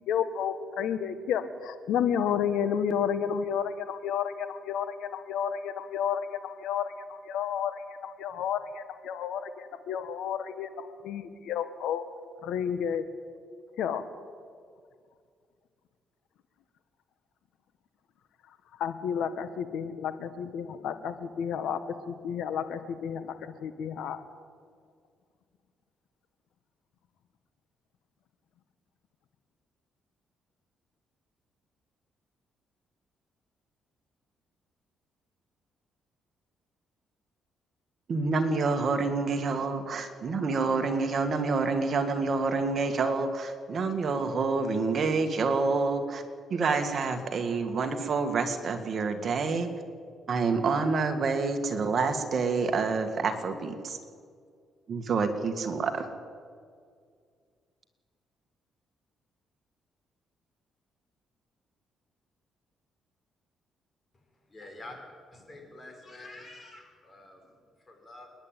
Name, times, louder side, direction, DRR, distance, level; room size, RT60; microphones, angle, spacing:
voice 1, 0.1-12.0 12.4-13.0 13.8-14.0 18.8-21.8 22.1-23.3 23.6-24.2, left 8 dB, 80° left, 11 dB, 1.5 m, -31 dB
voice 2, 38.1-46.2 46.5-49.7 50.3-54.0 54.9-56.1, right 4 dB, 50° right, 7 dB, 1.9 m, -28 dB
voice 3, 64.5-65.0 65.3-68.3, left 2 dB, 30° left, 3 dB, 5.3 m, -47 dB
28.0 x 10.5 x 9.0 m, 2.1 s
cardioid pair, 90°, 0 cm